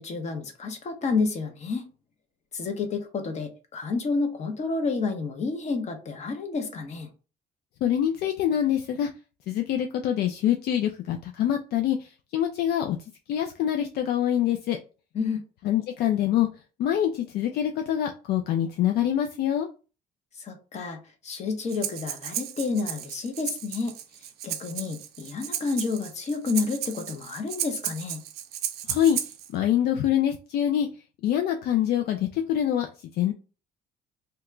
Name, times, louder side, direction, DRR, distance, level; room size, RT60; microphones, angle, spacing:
voice 1, 0.0-1.8 2.5-7.1 15.1-15.4 20.4-24.0 24.4-28.2, left 4 dB, 40° left, 5 dB, 0.9 m, -30 dB
voice 2, 7.8-9.1 9.5-13.0 13.3-14.8 15.6-16.5 16.8-19.7 28.9-29.2 29.5-30.9 31.2-32.9 33.2-33.3, left 10 dB, 70° left, 4 dB, 0.4 m, -25 dB
Breathing, 21.7-29.5, right 11 dB, 70° right, 0.4 m, -34 dB
2.8 x 2.2 x 3.7 m, 0.34 s
cardioid pair, 110°, 17 cm